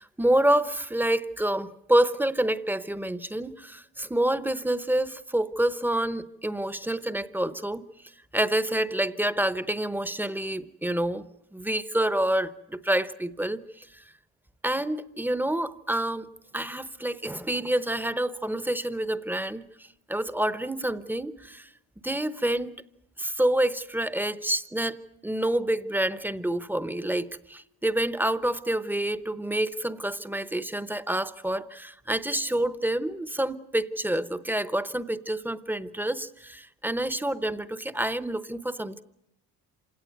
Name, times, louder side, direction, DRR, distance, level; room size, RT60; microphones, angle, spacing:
voice 1, 0.0-7.8 8.3-11.2 11.5-14.0 14.6-16.3 16.5-21.7 22.0-22.7 23.2-25.0 25.2-39.0, right 1 dB, 5° right, 14 dB, 0.8 m, -28 dB
27.0 x 17.5 x 9.5 m, 0.83 s
cardioid pair, 130°, 39 cm